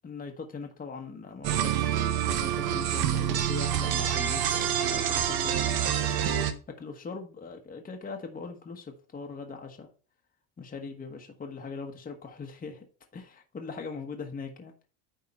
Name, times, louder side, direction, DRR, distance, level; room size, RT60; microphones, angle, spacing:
voice 1, 0.0-5.6 6.8-9.9 10.6-12.9 13.1-14.7, left 4 dB, 20° left, 1.2 m, -40 dB
sound 1, 1.4-6.5, right 10 dB, 55° right, 1.1 m, -27 dB
9.6 x 3.8 x 5.5 m
cardioid pair, 145°, 44 cm